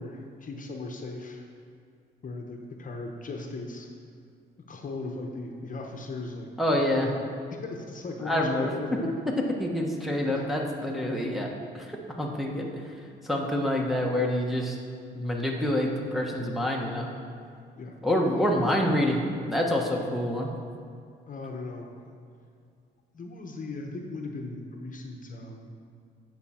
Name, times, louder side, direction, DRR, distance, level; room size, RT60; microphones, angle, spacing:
voice 1, 0.0-1.5 2.2-3.9 4.6-7.1 7.5-9.1 10.3-10.4 17.8-18.0 21.3-22.2 23.1-25.7, left 3 dB, 40° left, 2 dB, 0.9 m, -38 dB
voice 2, 6.6-7.1 8.2-8.7 9.6-11.5 11.7-12.7 13.2-14.8 15.1-17.1 18.0-19.2 19.5-20.5, left 1 dB, ahead, -1 dB, 1.2 m, -27 dB
9.3 x 6.1 x 4.4 m, 2.3 s
cardioid pair, 90°, 20 cm